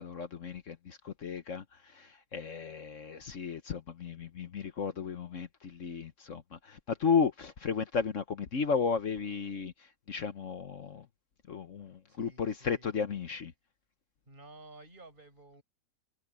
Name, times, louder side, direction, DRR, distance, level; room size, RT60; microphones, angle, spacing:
voice 1, 0.0-11.1 11.5-13.5, left 6 dB, 50° left, 1.3 m, -34 dB
voice 2, 12.1-12.9 14.3-15.6, right 2 dB, 30° right, 6.4 m, -53 dB
omnidirectional pair, 1.7 m